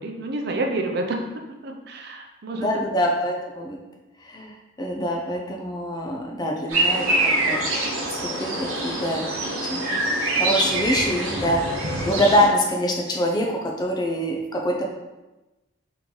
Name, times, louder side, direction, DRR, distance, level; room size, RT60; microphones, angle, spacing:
voice 1, 0.0-2.7, right 2 dB, 50° right, 3 dB, 0.5 m, -29 dB
voice 2, 2.5-3.8 4.2-7.6 8.4-9.3 9.7-9.8 10.1-14.9, equal, 20° left, 0 dB, 0.4 m, -25 dB
sound 1, 6.7-12.5, right 2 dB, 85° right, 1.0 m, -25 dB
3.7 x 3.0 x 3.9 m, 1.1 s
head